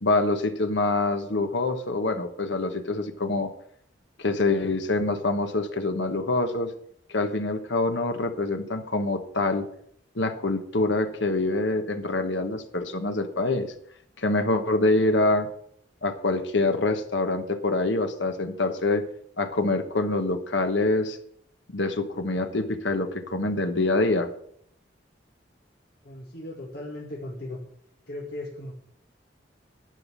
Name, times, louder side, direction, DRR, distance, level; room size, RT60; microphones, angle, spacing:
voice 1, 0.0-3.5 4.2-6.7 7.1-9.7 10.1-13.7 14.2-15.5 16.0-19.0 19.4-21.2 21.7-24.3, left 2 dB, 75° left, 7 dB, 1.2 m, -25 dB
voice 2, 26.0-27.6 28.1-28.7, left 1 dB, 60° left, -3 dB, 2.0 m, -37 dB
10.5 x 5.8 x 8.3 m, 0.67 s
head